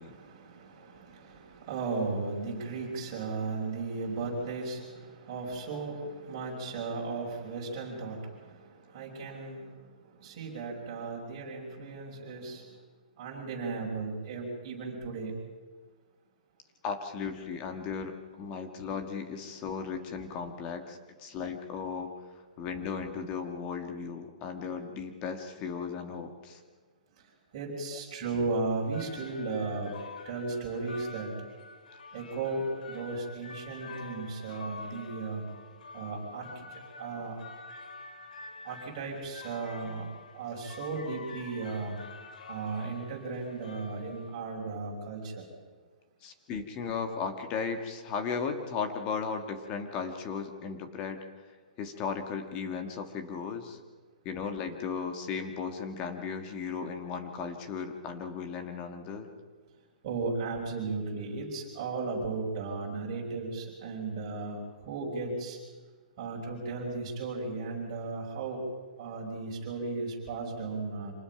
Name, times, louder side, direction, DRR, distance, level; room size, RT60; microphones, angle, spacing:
voice 1, 0.0-12.8 13.2-15.3 27.2-29.9 30.2-31.3 32.1-35.4 35.9-37.4 38.6-40.1 40.3-41.9 42.5-45.4 60.0-65.6 66.2-68.6 69.0-71.1, right 3 dB, 30° right, -2 dB, 5.6 m, -36 dB
voice 2, 16.8-22.1 22.6-26.6 27.9-28.0 46.2-51.2 51.8-53.8 54.2-59.3, left 5 dB, 20° left, 6 dB, 1.6 m, -36 dB
sound 1, 28.7-44.6, left 3 dB, 80° left, 2.2 m, -47 dB
26.0 x 19.5 x 5.8 m, 1.4 s
hypercardioid pair, 170°, 4 cm